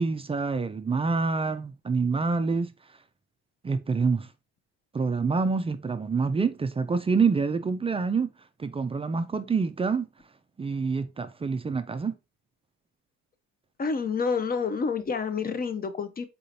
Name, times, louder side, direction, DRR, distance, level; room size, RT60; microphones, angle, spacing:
voice 1, 0.0-2.7 3.6-4.3 4.9-8.3 8.6-10.1 10.6-12.2, right 4 dB, 15° right, 0.4 m, -26 dB
voice 2, 13.8-16.3, left 5 dB, 25° left, 0.6 m, -28 dB
4.1 x 3.8 x 2.7 m
supercardioid pair, 80°, 37 cm